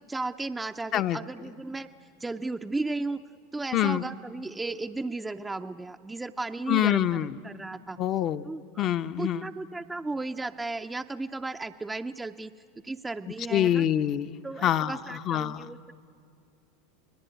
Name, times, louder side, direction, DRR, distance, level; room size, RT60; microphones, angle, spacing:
voice 1, 0.0-1.9 2.2-3.2 3.5-7.1 7.4-8.0 8.4-8.9 9.2-12.5 12.8-13.9 14.4-15.9, right 3 dB, 10° right, 6 dB, 0.5 m, -35 dB
voice 2, 3.7-4.0 6.7-7.4 8.0-8.5 8.8-9.5 13.5-15.7, left 11 dB, 45° left, 10 dB, 0.8 m, -26 dB
28.0 x 20.0 x 9.3 m, 2.5 s
supercardioid pair, 115°, 0 cm